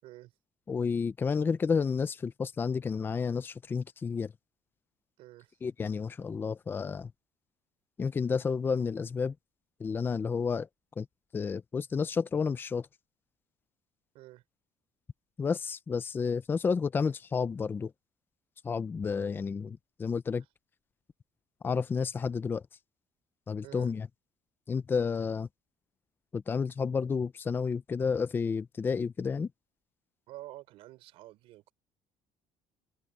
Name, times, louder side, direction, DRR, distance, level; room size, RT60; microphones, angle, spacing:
voice 1, 0.7-4.3 5.6-7.1 8.0-9.3 9.8-10.7 11.0-11.1 11.3-12.9 15.4-17.9 18.6-20.4 21.6-22.6 23.5-24.1 24.7-25.5 26.3-29.5, left 5 dB, 20° left, 0.6 m, -31 dB
voice 2, 5.2-5.6 14.1-14.4 19.2-19.3 23.6-23.9 30.3-31.7, right 16 dB, 75° right, 4.8 m, -49 dB
cardioid pair, 145°, 10 cm